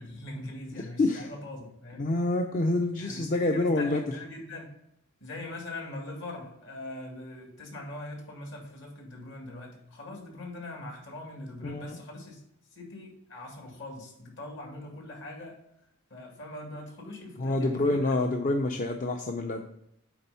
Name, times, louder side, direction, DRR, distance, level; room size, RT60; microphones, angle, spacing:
voice 1, 0.0-2.2 3.0-4.7 5.2-12.4 12.7-15.5 16.1-18.2, left 2 dB, 65° left, 0 dB, 2.1 m, -42 dB
voice 2, 1.0-1.3 2.0-4.0 11.6-12.0 17.4-19.7, left 2 dB, 40° left, 4 dB, 0.5 m, -27 dB
8.7 x 3.4 x 5.4 m, 0.80 s
head